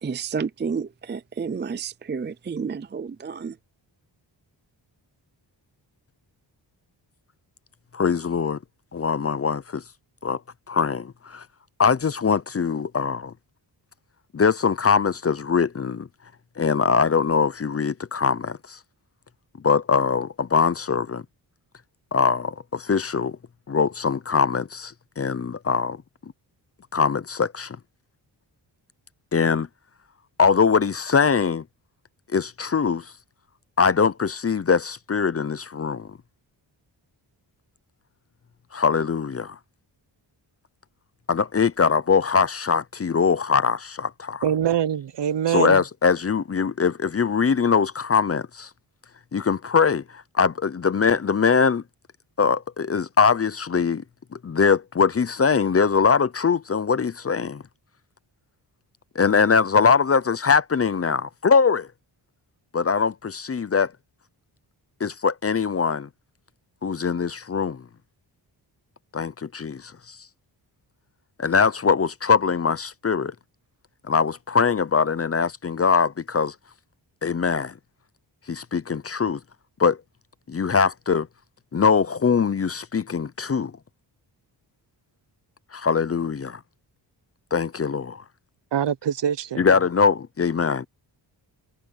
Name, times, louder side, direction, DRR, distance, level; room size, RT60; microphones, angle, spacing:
voice 1, 0.0-3.5, right 5 dB, 25° right, 0.5 m, -30 dB
voice 2, 7.9-8.6 8.9-9.8 10.2-10.4 10.7-11.4 11.8-13.3 14.3-16.1 16.6-18.8 19.6-21.2 22.1-23.4 23.7-26.0 26.9-27.8 29.3-29.7 30.4-31.6 32.3-33.1 33.8-36.1 38.7-39.6 41.3-44.4 45.5-48.7 49.3-51.8 52.4-54.0 54.3-57.6 59.1-61.9 62.7-63.9 65.0-66.1 66.8-67.8 69.1-70.2 71.4-73.3 74.1-76.5 77.2-77.7 78.5-79.4 79.8-80.0 80.5-81.3 81.7-83.7 85.7-86.6 87.5-88.2 89.6-90.9, left 5 dB, 30° left, 0.6 m, -22 dB
voice 3, 44.4-45.8 88.7-89.7, right 9 dB, 65° right, 0.9 m, -24 dB
wide cardioid pair, 110°, 45 cm